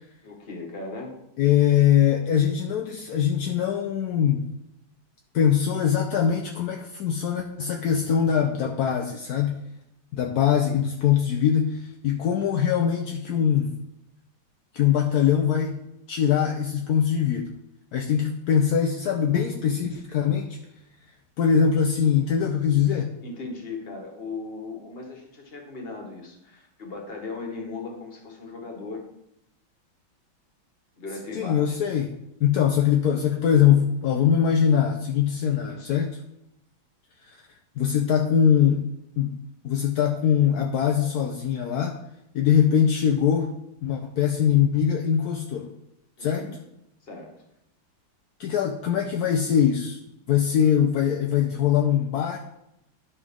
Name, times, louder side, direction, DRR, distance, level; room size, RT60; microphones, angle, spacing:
voice 1, 0.2-1.2 23.2-29.0 31.0-31.8 46.2-46.6 47.0-47.3, left 3 dB, 30° left, 1 dB, 1.5 m, -37 dB
voice 2, 1.4-4.5 5.3-9.6 10.1-13.8 14.7-15.8 16.1-17.5 17.9-20.6 21.4-23.1 31.3-36.2 37.8-38.8 39.2-39.4 39.6-42.0 42.3-43.5 43.8-45.7 46.2-46.5 48.4-50.0 50.3-52.5, left 8 dB, 70° left, 3 dB, 0.9 m, -22 dB
11.5 x 5.4 x 3.6 m, 0.83 s
omnidirectional pair, 2.2 m